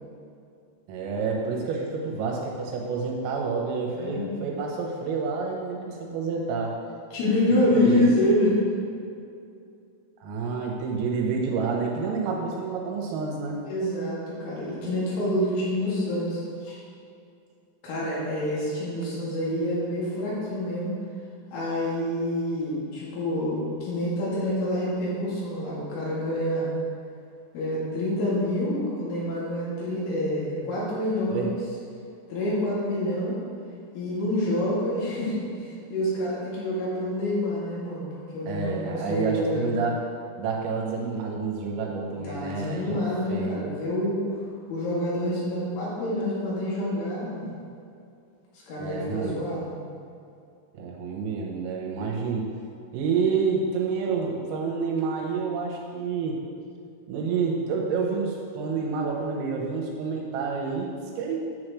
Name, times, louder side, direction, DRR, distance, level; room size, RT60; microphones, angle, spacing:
voice 1, 0.9-6.7 7.7-8.1 10.2-13.6 31.3-31.5 38.5-40.0 40.4-43.0 43.3-43.6 48.8-49.4 50.8-52.5 52.9-56.4 57.1-61.5, right 5 dB, 85° right, -1 dB, 3.7 m, -28 dB
voice 2, 3.9-4.3 7.1-8.6 13.7-16.8 17.8-20.9 21.5-26.7 27.5-31.5 32.3-33.4 33.9-38.1 38.3-39.7 42.1-44.2 44.7-47.5 48.7-49.8, left 1 dB, 75° left, -8 dB, 4.8 m, -27 dB
10.0 x 7.7 x 3.2 m, 2.5 s
omnidirectional pair, 6.0 m